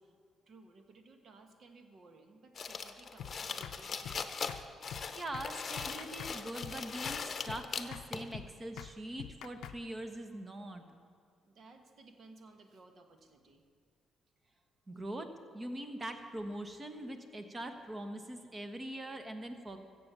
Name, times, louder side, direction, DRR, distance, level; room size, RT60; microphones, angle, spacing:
voice 1, 0.5-4.2 11.4-13.6, right 3 dB, 55° right, 5 dB, 1.5 m, -58 dB
sound 1, 2.6-8.3, left 5 dB, 40° left, 0.8 m, -40 dB
sound 2, 3.2-3.3 3.6-3.8 4.0-4.2 4.5-4.6 4.9-5.0 5.3-5.5 5.8-6.3 6.6-6.8 7.1-7.2 7.5-7.6 7.9-8.1 8.3-8.5 8.8-8.9 9.2-9.8, left 10 dB, 85° left, 0.5 m, -45 dB
voice 2, 5.1-10.8 14.9-19.8, right 1 dB, 25° right, 7 dB, 1.4 m, -42 dB
15.0 x 7.7 x 7.0 m, 2.3 s
cardioid pair, 90°, 0 cm